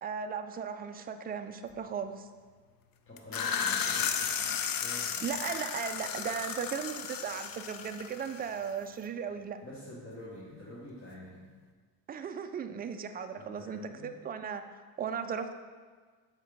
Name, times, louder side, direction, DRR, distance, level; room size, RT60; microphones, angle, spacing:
voice 1, 0.0-2.3 5.2-9.6 12.1-14.6 15.0-15.5, right 7 dB, 20° right, 8 dB, 0.3 m, -36 dB
voice 2, 3.1-5.6 9.6-11.4 13.3-14.1, left 1 dB, 25° left, -7 dB, 1.3 m, -48 dB
sound 1, 3.2-8.7, left 7 dB, 45° left, 0.6 m, -34 dB
7.1 x 4.8 x 3.5 m, 1.5 s
cardioid pair, 90°, 48 cm